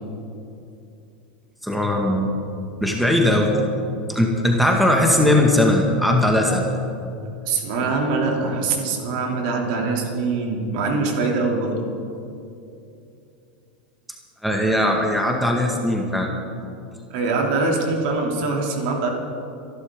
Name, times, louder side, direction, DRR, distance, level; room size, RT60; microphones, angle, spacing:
voice 1, 1.6-2.3 2.8-3.5 4.1-6.7 7.2-7.3 14.4-16.3, left 1 dB, ahead, 1 dB, 1.9 m, -19 dB
voice 2, 7.5-11.7 17.1-19.1, right 3 dB, 60° right, 0 dB, 3.0 m, -23 dB
27.0 x 11.5 x 3.8 m, 2.7 s
hypercardioid pair, 95°, 5 cm